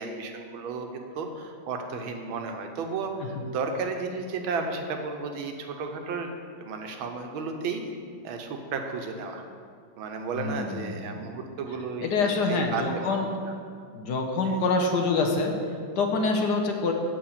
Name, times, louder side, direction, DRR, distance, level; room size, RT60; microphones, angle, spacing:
voice 1, 0.0-6.3 6.6-7.8 8.2-9.4 10.0-12.1 12.5-13.1 14.4-14.6, right 4 dB, 85° right, 4 dB, 1.7 m, -33 dB
voice 2, 10.3-11.2 12.0-13.3 13.9-16.9, left 3 dB, 65° left, 3 dB, 1.3 m, -26 dB
7.7 x 5.7 x 7.2 m, 2.2 s
omnidirectional pair, 2.1 m